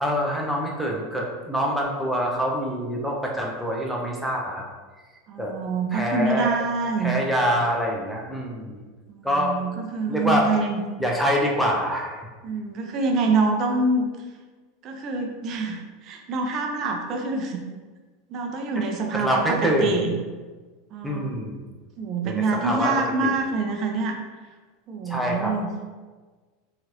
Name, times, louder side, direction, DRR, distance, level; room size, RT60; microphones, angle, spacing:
voice 1, 0.0-4.6 5.4-5.5 5.9-6.5 7.0-8.8 9.2-9.5 10.1-10.5 11.0-12.2 19.1-20.0 21.0-21.6 22.2-22.9 23.2-23.3 25.1-25.5, equal, ahead, -2 dB, 0.6 m, -25 dB
voice 2, 5.3-7.1 9.1-10.8 12.4-14.1 14.8-17.6 18.3-20.1 20.9-21.3 22.0-24.2 24.9-25.7, right 3 dB, 45° right, 3 dB, 0.5 m, -26 dB
3.0 x 2.4 x 2.9 m, 1.4 s
hypercardioid pair, 105°, 0 cm